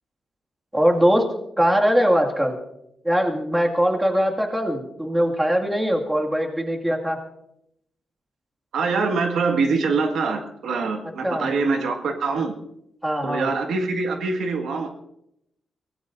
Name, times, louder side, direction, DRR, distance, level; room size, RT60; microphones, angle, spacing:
voice 1, 0.7-2.6 3.0-7.2 11.2-11.5 13.0-13.5, equal, 10° right, 1 dB, 2.1 m, -21 dB
voice 2, 8.7-12.5 13.2-14.9, right 4 dB, 90° right, 3 dB, 1.8 m, -24 dB
24.5 x 17.5 x 2.6 m, 0.80 s
wide cardioid pair, 125°, 0 cm